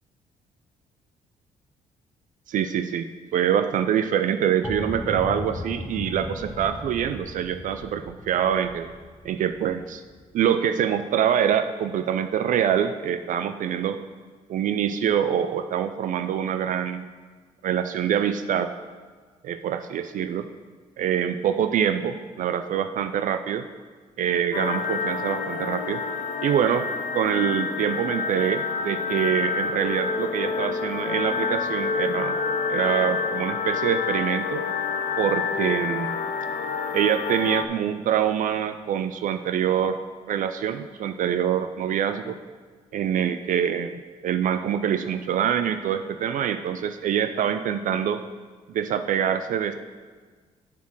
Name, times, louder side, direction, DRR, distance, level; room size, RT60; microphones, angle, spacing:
voice 1, 2.5-3.1 3.3-8.9 9.2-10.0 10.3-14.0 14.5-17.1 17.6-18.7 19.4-20.4 21.0-23.6 24.2-26.0 26.4-26.9 27.1-32.4 32.7-34.7 35.2-36.2 36.9-40.0 40.3-42.4 42.9-48.2 48.7-49.7, right 9 dB, 65° right, 9 dB, 0.4 m, -25 dB
sound 1, 4.6-10.3, left 3 dB, 15° left, 0.5 m, -37 dB
sound 2, 24.5-37.7, left 5 dB, 65° left, 0.6 m, -28 dB
7.0 x 4.5 x 6.1 m, 1.5 s
supercardioid pair, 70°, 15 cm